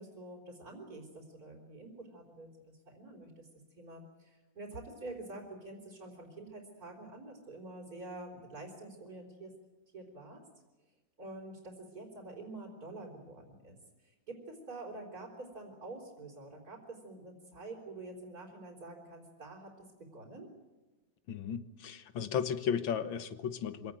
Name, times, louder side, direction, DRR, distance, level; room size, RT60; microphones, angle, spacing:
voice 1, 0.0-3.5 3.8-9.5 9.9-10.4 11.2-20.5, right 2 dB, 50° right, -3 dB, 4.7 m, -47 dB
voice 2, 21.3-23.9, left 8 dB, 85° left, 12 dB, 2.0 m, -35 dB
25.5 x 18.0 x 9.2 m, 1.2 s
omnidirectional pair, 2.0 m